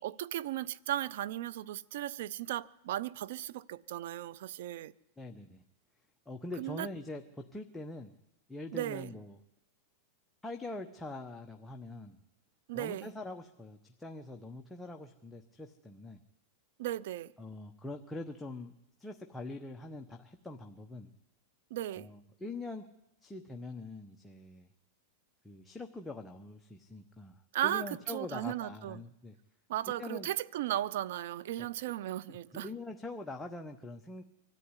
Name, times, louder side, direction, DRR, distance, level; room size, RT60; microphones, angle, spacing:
voice 1, 0.0-4.9 6.6-6.9 8.7-9.1 12.7-13.1 16.8-17.3 21.7-22.1 27.5-29.0 29.7-32.7, right 13 dB, 70° right, 0.7 m, -36 dB
voice 2, 5.2-5.6 6.3-8.1 8.5-9.4 10.4-12.2 12.7-16.2 17.4-18.7 19.0-21.1 21.9-22.9 23.2-24.7 25.4-29.4 30.0-30.3 31.6-31.7 32.5-34.2, left 2 dB, 5° left, 1.1 m, -43 dB
23.5 x 14.0 x 9.8 m
supercardioid pair, 130°, 0 cm